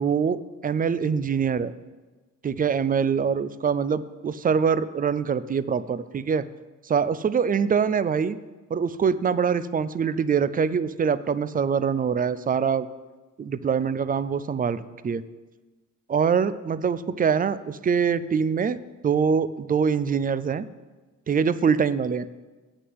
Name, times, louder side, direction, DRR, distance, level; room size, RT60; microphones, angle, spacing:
voice 1, 0.0-1.7 2.4-6.5 6.8-8.4 8.7-12.9 13.4-15.2 16.1-18.8 19.0-20.7 21.3-22.3, right 6 dB, 30° right, 16 dB, 0.4 m, -24 dB
7.9 x 6.2 x 7.8 m, 1.3 s
cardioid pair, 90°, 30 cm